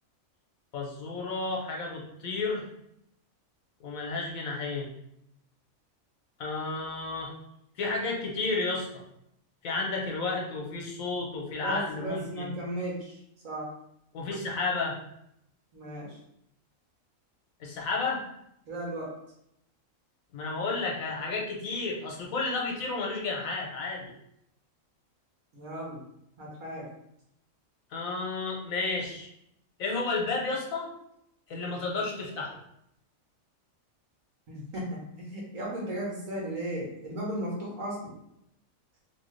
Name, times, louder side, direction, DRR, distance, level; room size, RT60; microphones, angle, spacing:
voice 1, 0.7-2.7 3.8-4.9 6.4-7.3 7.8-9.0 9.6-12.5 14.1-15.0 17.6-18.3 20.3-24.1 27.9-29.3 29.8-30.9 31.5-32.6, left 3 dB, 85° left, -1 dB, 1.2 m, -32 dB
voice 2, 11.6-13.2 13.4-13.7 15.7-16.2 18.7-19.1 25.5-26.0 26.4-26.9 34.5-38.1, right 1 dB, 70° right, -3 dB, 1.5 m, -35 dB
3.0 x 2.9 x 3.1 m, 0.78 s
omnidirectional pair, 1.4 m